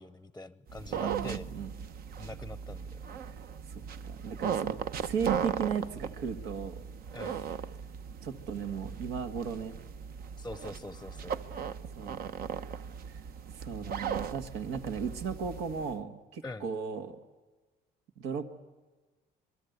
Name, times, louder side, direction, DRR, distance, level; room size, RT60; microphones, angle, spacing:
voice 1, 0.0-1.5 2.2-3.0 7.1-7.5 10.4-11.3 16.4-16.7, left 2 dB, 10° left, 15 dB, 0.7 m, -44 dB
sound 1, 0.7-15.9, right 7 dB, 60° right, 1.0 m, -38 dB
voice 2, 1.0-1.7 3.7-6.7 8.2-9.8 12.0-12.2 13.5-17.2 18.2-18.5, right 6 dB, 90° right, 7 dB, 2.0 m, -36 dB
27.5 x 22.5 x 8.2 m, 1.2 s
cardioid pair, 110°, 17 cm